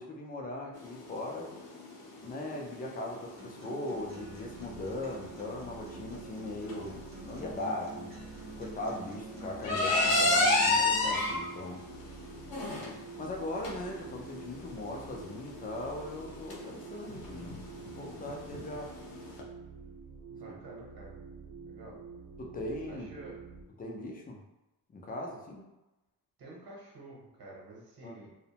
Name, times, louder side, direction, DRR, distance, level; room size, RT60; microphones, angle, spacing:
voice 1, 0.0-1.5 2.2-8.2 8.6-11.8 13.2-18.9 22.4-23.1 23.8-24.4 24.9-25.7 28.0-28.2, left 2 dB, 25° left, 0 dB, 0.3 m, -39 dB
sound 1, 0.8-19.4, left 2 dB, 60° left, 0.7 m, -33 dB
Acoustic guitar, 3.4-11.4, right 2 dB, 25° right, 0.6 m, -49 dB
sound 2, 3.9-23.6, right 5 dB, 85° right, 0.5 m, -48 dB
voice 2, 12.7-13.0 20.3-21.1 21.7-22.0 22.9-23.4 26.4-28.3, right 2 dB, 60° right, -4 dB, 0.9 m, -49 dB
2.5 x 2.1 x 2.8 m, 0.99 s
wide cardioid pair, 160°, 39 cm